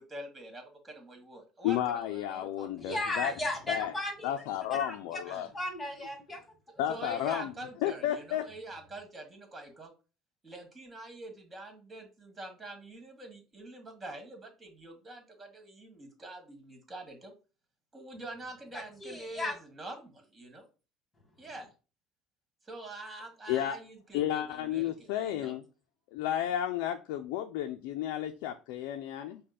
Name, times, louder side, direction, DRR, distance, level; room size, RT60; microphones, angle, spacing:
voice 1, 0.1-3.0 5.3-5.5 6.9-9.9 10.4-17.3 17.9-20.7 21.4-21.7 22.7-25.6, right 2 dB, 25° right, 4 dB, 1.8 m, -45 dB
voice 2, 1.6-3.3 3.7-3.9 4.2-5.5 6.8-7.5 7.8-8.4 23.5-23.8 24.1-25.6 26.1-29.4, left 11 dB, 80° left, 5 dB, 0.4 m, -32 dB
voice 3, 2.8-4.4 4.8-5.2 5.5-6.4 18.7-19.5, left 1 dB, 20° left, 3 dB, 2.0 m, -35 dB
5.1 x 2.2 x 4.2 m, 0.33 s
supercardioid pair, 80°, 0 cm